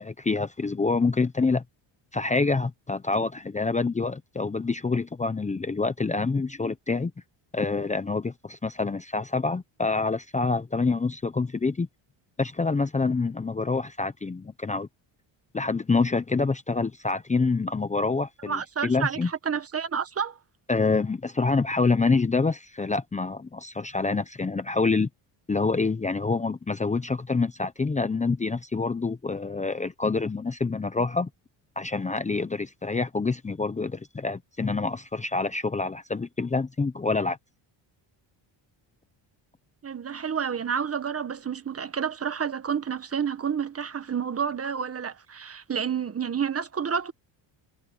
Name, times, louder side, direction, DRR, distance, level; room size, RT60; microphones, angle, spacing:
voice 1, 0.0-1.6 2.1-7.1 7.5-11.9 12.4-14.9 15.5-19.3 20.7-25.1 25.5-31.3 31.8-37.4, left 4 dB, 15° left, 0.8 m, -26 dB
voice 2, 18.5-20.4 39.8-47.1, right 7 dB, 30° right, 1.3 m, -29 dB
cardioid pair, 115°, 47 cm